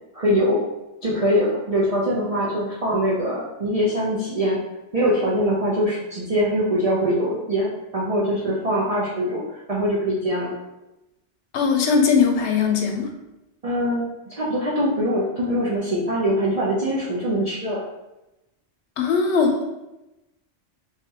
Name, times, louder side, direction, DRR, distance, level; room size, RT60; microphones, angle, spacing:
voice 1, 0.1-0.6 1.0-4.6 4.9-10.5 13.6-17.8, equal, 40° right, -7 dB, 0.6 m, -23 dB
voice 2, 11.5-13.1 19.0-19.6, left 5 dB, 70° left, 2 dB, 0.9 m, -20 dB
3.3 x 3.2 x 3.0 m, 0.96 s
omnidirectional pair, 1.2 m